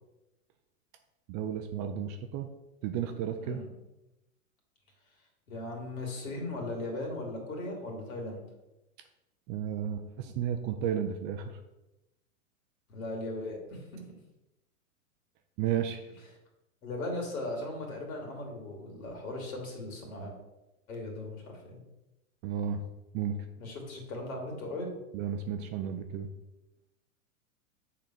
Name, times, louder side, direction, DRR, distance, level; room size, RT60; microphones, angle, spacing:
voice 1, 1.3-2.5 2.8-3.6 9.5-11.5 15.6-16.0 22.4-22.8 23.1-23.4 25.1-26.3, right 9 dB, 25° right, 6 dB, 0.4 m, -33 dB
voice 2, 5.5-8.5 12.9-13.8 16.8-20.3 20.9-21.8 23.6-24.9, left 2 dB, 70° left, 0 dB, 2.8 m, -38 dB
6.7 x 4.0 x 5.9 m, 0.98 s
hypercardioid pair, 115°, 43 cm